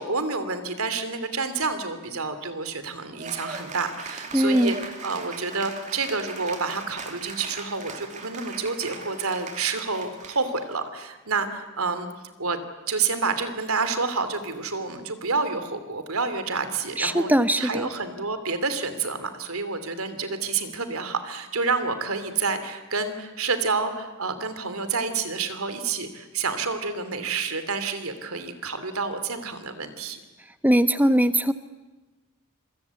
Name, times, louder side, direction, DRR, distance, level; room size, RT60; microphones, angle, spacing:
voice 1, 0.0-12.6 12.9-17.3 17.6-30.2, right 4 dB, 80° right, 10 dB, 2.9 m, -29 dB
Cheering / Applause, 3.2-10.7, right 4 dB, 35° right, 2.8 m, -39 dB
voice 2, 4.3-4.8 17.0-17.9 30.6-31.5, right 1 dB, 10° right, 11 dB, 1.1 m, -20 dB
27.0 x 23.5 x 8.4 m, 1.2 s
head